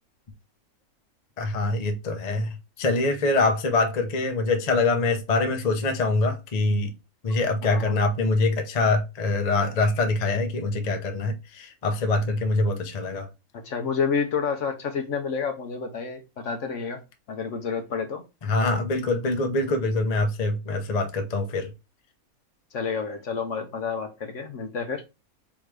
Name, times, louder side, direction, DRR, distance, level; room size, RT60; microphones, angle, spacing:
voice 1, 1.4-6.9 7.2-13.3 18.4-21.7, left 2 dB, 35° left, 0.8 m, -24 dB
voice 2, 7.6-8.0 13.5-17.0 17.3-18.2 22.7-25.0, left 5 dB, 60° left, 1.1 m, -29 dB
3.6 x 3.0 x 4.8 m
omnidirectional pair, 1.6 m